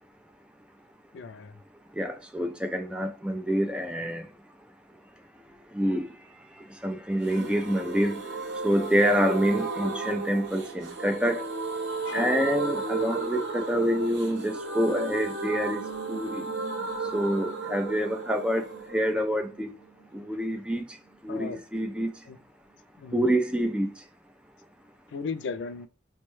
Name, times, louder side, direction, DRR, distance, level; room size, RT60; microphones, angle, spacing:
voice 1, 1.1-1.6 12.0-12.3 21.3-21.6 22.3-22.4 23.0-23.3 25.1-25.9, left 5 dB, 75° left, 0.3 m, -36 dB
voice 2, 2.0-4.3 5.7-6.1 6.8-8.2 8.6-11.4 12.1-15.8 16.1-16.5 17.1-18.7 18.9-19.7 20.1-20.8 21.2-22.1 23.1-23.9, equal, 5° right, 0.4 m, -27 dB
sound 1, 7.2-20.9 21.1-21.2 21.5-21.6, right 4 dB, 85° right, 0.8 m, -34 dB
4.4 x 2.2 x 3.0 m
head